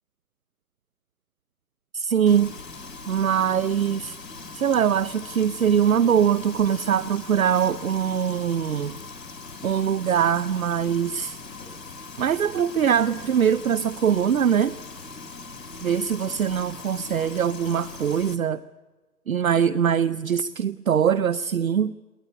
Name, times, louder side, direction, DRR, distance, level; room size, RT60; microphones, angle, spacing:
voice 1, 1.9-4.2 4.5-9.0 9.6-11.4 12.2-14.8 15.8-18.6 19.3-21.9, right 8 dB, 60° right, 17 dB, 0.7 m, -22 dB
Frying (food), 2.3-18.3, left 4 dB, 80° left, 3.5 m, -40 dB
22.5 x 18.0 x 8.3 m, 1.3 s
hypercardioid pair, 170°, 48 cm